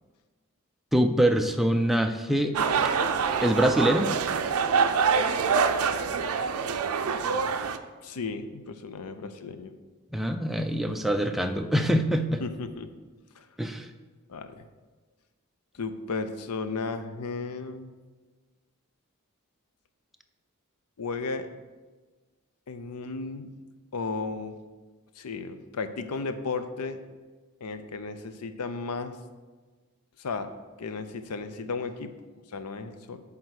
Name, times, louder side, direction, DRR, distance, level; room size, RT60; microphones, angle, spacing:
voice 1, 0.9-2.5 3.4-4.1 10.1-12.4 13.6-13.9, right 1 dB, ahead, 5 dB, 0.4 m, -24 dB
sound 1, 2.5-7.8, right 5 dB, 70° right, 0.5 m, -25 dB
voice 2, 8.0-9.7 12.4-12.9 13.4-13.5 14.3-14.7 15.7-17.9 21.0-21.5 22.7-23.5 23.9-24.6 25.2-27.0 27.6-29.2 30.2-30.5 30.8-32.1 32.5-33.2, left 4 dB, 85° left, 10 dB, 0.6 m, -34 dB
8.8 x 3.6 x 6.4 m, 1.4 s
head